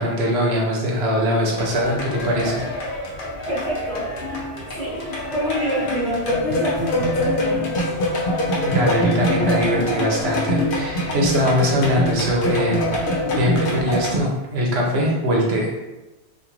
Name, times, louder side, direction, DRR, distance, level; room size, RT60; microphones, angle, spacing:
voice 1, 0.0-2.6 8.6-15.7, equal, 75° right, -2 dB, 0.9 m, -22 dB
Wind instrument woodwind instrument, 0.8-9.1, left 2 dB, 85° left, 1.0 m, -38 dB
sound 1, 1.5-14.2, equal, 60° left, 0.7 m, -24 dB
voice 2, 3.5-4.1 4.7-5.0 5.3-7.8, equal, 35° right, -7 dB, 1.1 m, -26 dB
2.5 x 2.4 x 2.9 m, 1.0 s
omnidirectional pair, 1.1 m